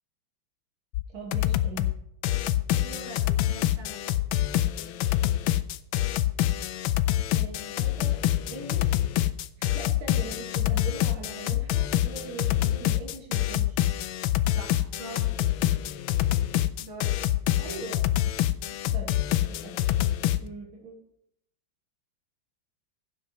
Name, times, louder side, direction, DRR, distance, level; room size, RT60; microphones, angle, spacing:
sound 1, 0.9-1.0 1.3-1.9 2.2-20.4, left 13 dB, 85° left, 1.4 m, -26 dB
voice 1, 1.1-1.9 7.3-8.2 8.5-9.0 9.6-13.8 17.5-18.1 18.9-19.1 19.6-19.8 20.4-21.0, right 3 dB, 90° right, -1 dB, 2.6 m, -40 dB
voice 2, 2.7-4.1 14.5-15.3 16.8-17.1 18.8-19.0, right 1 dB, 70° right, 0 dB, 3.1 m, -43 dB
15.5 x 7.9 x 3.1 m, 0.75 s
omnidirectional pair, 2.1 m